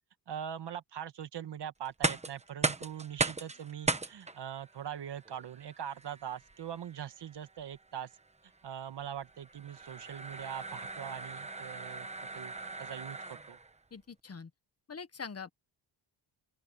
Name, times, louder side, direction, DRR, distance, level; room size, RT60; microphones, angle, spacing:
voice 1, 0.3-8.1 8.6-12.1 12.3-13.6, right 9 dB, 60° right, 1.8 m, -42 dB
sound 1, 1.8-13.7, right 3 dB, 15° right, 1.1 m, -38 dB
voice 2, 13.9-14.5 14.9-15.5, left 5 dB, 30° left, 1.4 m, -43 dB
open air
wide cardioid pair, 135°, 45 cm